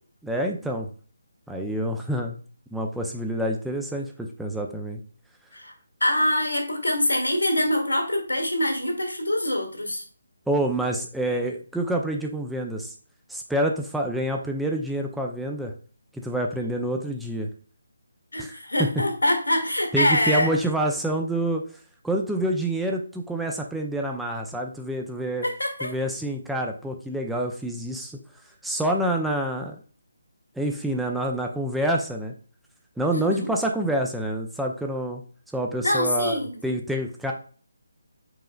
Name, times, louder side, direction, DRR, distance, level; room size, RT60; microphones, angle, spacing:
voice 1, 0.2-0.9 1.5-2.4 2.7-5.0 10.5-12.9 13.3-15.7 16.1-17.5 18.4-18.5 18.8-18.9 19.9-21.6 22.0-25.4 25.8-28.2 28.6-29.8 30.6-32.3 33.0-35.2 35.5-37.3, right 1 dB, ahead, 1 dB, 0.4 m, -27 dB
voice 2, 6.0-10.0 18.3-20.5 25.4-25.9 33.1-33.5 35.8-36.6, left 1 dB, 80° left, 3 dB, 1.5 m, -24 dB
4.8 x 4.8 x 2.3 m, 0.41 s
figure-of-eight pair, 145°, 0 cm